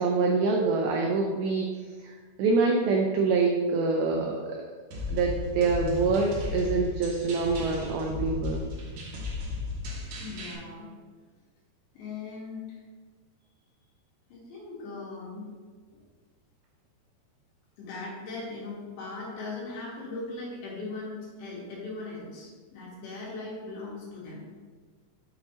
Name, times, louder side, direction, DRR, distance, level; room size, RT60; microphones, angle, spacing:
voice 1, 0.0-1.7 2.0-4.5 5.1-8.6, right 4 dB, 85° right, 1 dB, 2.1 m, -25 dB
sound 1, 4.9-10.5, left 3 dB, 60° right, 2.2 m, -35 dB
voice 2, 10.2-10.9 11.9-12.8 14.3-15.5 17.8-24.5, left 3 dB, 80° left, -5 dB, 3.8 m, -39 dB
6.7 x 6.2 x 2.9 m, 1.5 s
omnidirectional pair, 5.0 m